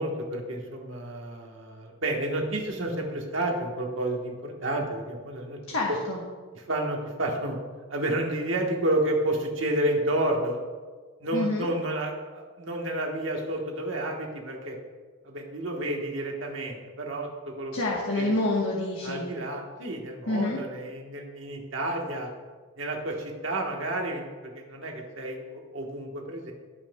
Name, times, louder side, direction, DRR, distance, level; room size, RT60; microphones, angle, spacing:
voice 1, 0.0-5.6 6.5-7.6 7.9-10.6 11.2-14.8 15.2-17.7 18.1-18.3 19.0-22.3 22.8-26.5, right 1 dB, 65° right, 1 dB, 1.4 m, -30 dB
voice 2, 5.7-6.2 11.3-11.7 17.7-19.2 20.3-20.6, left 2 dB, 75° left, -3 dB, 1.3 m, -27 dB
16.5 x 5.7 x 2.3 m, 1.5 s
head